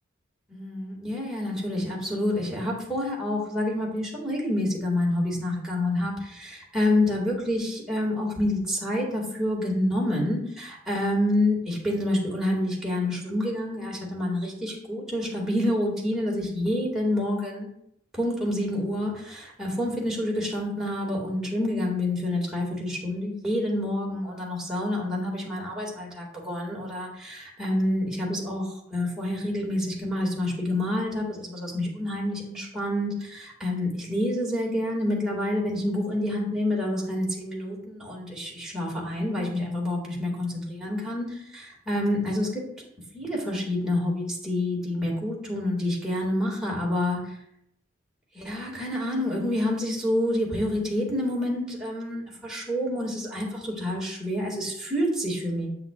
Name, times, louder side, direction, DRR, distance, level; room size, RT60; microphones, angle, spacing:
voice 1, 0.5-17.7 18.1-42.6 43.1-47.3 48.3-55.7, left 1 dB, 5° right, -4 dB, 2.0 m, -28 dB
8.0 x 7.5 x 2.4 m, 0.74 s
head